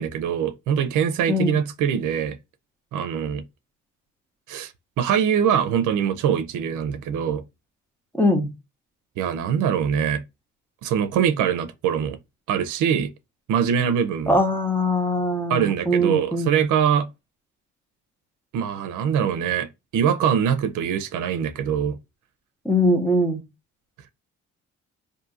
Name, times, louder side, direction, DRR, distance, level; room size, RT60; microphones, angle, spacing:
voice 1, 0.0-2.4 2.9-3.4 4.5-4.7 5.0-7.4 9.2-10.2 10.8-12.2 12.5-13.1 13.5-14.4 15.5-17.1 18.5-22.0, right 8 dB, 85° right, 0.5 m, -23 dB
voice 2, 8.1-8.5 14.3-16.6 22.6-23.4, left 1 dB, 5° left, 0.8 m, -21 dB
2.7 x 2.6 x 2.3 m
cardioid pair, 90°, 30 cm